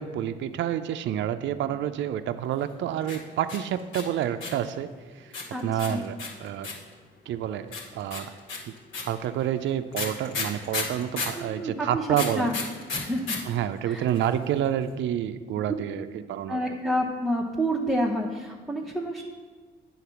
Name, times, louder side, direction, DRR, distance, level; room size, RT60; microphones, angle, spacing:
voice 1, 0.0-4.9 5.2-5.3 5.6-6.7 7.3-8.3 8.7-12.5 13.5-16.8, right 10 dB, 70° right, 9 dB, 0.4 m, -29 dB
sound 1, 3.0-4.7 5.3-6.9 7.7-11.4 12.1-13.4 13.6-13.7 13.9-14.4, left 4 dB, 85° left, 1.9 m, -32 dB
voice 2, 11.3-12.1 12.3-12.6 12.9-13.4 13.8-14.1 16.5-19.2, equal, ahead, -1 dB, 0.8 m, -28 dB
9.2 x 3.8 x 6.9 m, 1.5 s
cardioid pair, 90°, 20 cm